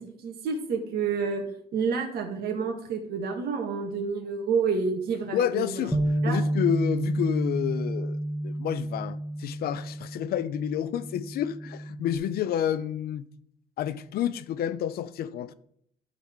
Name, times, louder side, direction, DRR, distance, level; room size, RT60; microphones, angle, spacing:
voice 1, 0.0-1.4 1.7-5.9 6.2-6.4, right 5 dB, 65° right, 1.9 m, -29 dB
voice 2, 5.3-6.0 6.3-13.3 13.8-15.5, left 10 dB, 65° left, 0.6 m, -29 dB
Bass guitar, 5.9-12.2, right 1 dB, ahead, 1.2 m, -30 dB
12.0 x 4.1 x 4.7 m
cardioid pair, 110°, 17 cm